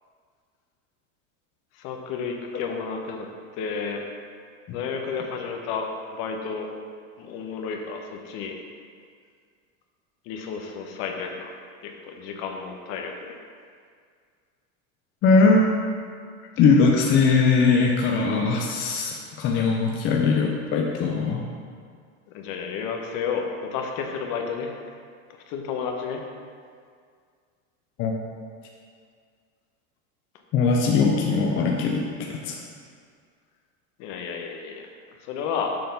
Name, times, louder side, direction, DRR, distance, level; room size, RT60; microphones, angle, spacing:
voice 1, 1.7-3.3 3.6-4.0 4.7-6.7 7.2-8.5 10.3-11.5 11.8-13.4 22.3-24.8 25.5-26.2 34.0-34.8 35.2-35.8, left 6 dB, 50° left, 3 dB, 0.9 m, -31 dB
voice 2, 15.2-15.7 16.6-21.5 28.0-28.1 30.5-32.6, left 4 dB, 30° left, 0 dB, 0.5 m, -21 dB
6.8 x 3.8 x 5.2 m, 2.1 s
supercardioid pair, 145°, 41 cm